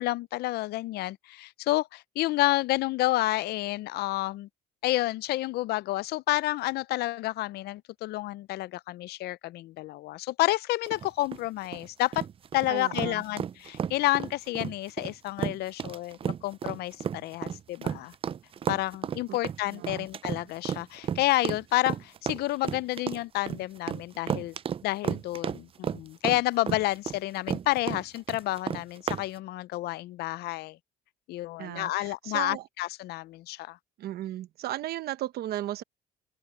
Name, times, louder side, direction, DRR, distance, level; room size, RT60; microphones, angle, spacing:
voice 1, 0.0-4.5 4.8-12.3 12.5-18.1 18.7-24.5 24.8-30.8 31.3-33.8, left 17 dB, 70° left, 0.5 m, -30 dB
sound 1, 10.9-29.3, right 8 dB, 35° right, 0.4 m, -33 dB
voice 2, 12.7-13.2 19.3-19.4 19.7-20.1 31.6-32.7 34.0-35.8, right 13 dB, 70° right, 1.0 m, -35 dB
cardioid pair, 110°, 17 cm